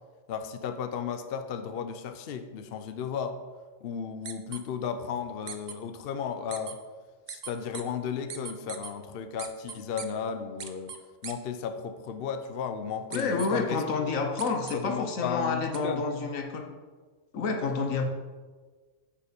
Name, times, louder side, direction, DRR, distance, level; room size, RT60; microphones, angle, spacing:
voice 1, 0.3-3.4 3.8-6.8 7.3-10.9 11.2-13.8 14.7-16.0, left 7 dB, 55° left, 8 dB, 0.7 m, -34 dB
sound 1, 4.2-4.6 5.5-5.7 6.5-6.7 7.3-7.8 8.3-8.9 9.4-10.1 10.6-11.0 11.2-11.3 13.1-13.5 14.4-14.8 15.7-15.8, right 7 dB, 45° right, 0.6 m, -39 dB
voice 2, 13.1-16.7 17.3-18.0, left 4 dB, 80° left, 4 dB, 1.4 m, -29 dB
7.4 x 6.8 x 5.2 m, 1.4 s
omnidirectional pair, 1.4 m